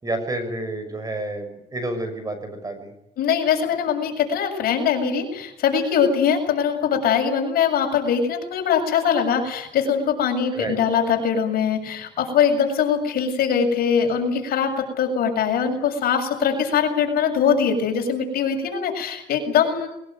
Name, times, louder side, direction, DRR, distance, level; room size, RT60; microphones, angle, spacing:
voice 1, 0.0-2.9 10.5-10.8, right 1 dB, 20° right, 9 dB, 6.4 m, -29 dB
voice 2, 3.2-19.9, left 7 dB, 60° left, 3 dB, 7.2 m, -22 dB
22.0 x 21.5 x 9.4 m, 0.82 s
cardioid pair, 110°, 17 cm